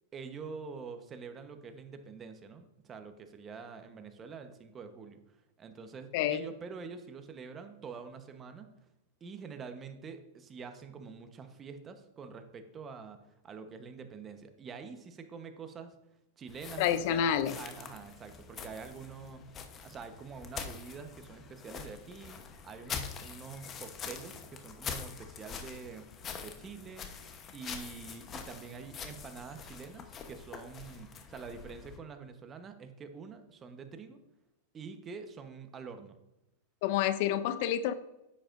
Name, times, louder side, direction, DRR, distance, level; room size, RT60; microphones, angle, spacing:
voice 1, 0.1-8.7 9.2-13.2 13.4-16.0 16.4-19.4 19.8-26.1 26.3-27.1 27.5-34.2 34.7-36.2, right 5 dB, 25° right, 7 dB, 1.0 m, -46 dB
sound 1, 16.5-32.0, left 7 dB, 30° left, 0.9 m, -45 dB
voice 2, 16.8-17.5 36.8-37.9, left 10 dB, 55° left, 12 dB, 0.5 m, -28 dB
9.8 x 7.9 x 2.6 m, 0.92 s
hypercardioid pair, 120°, 0 cm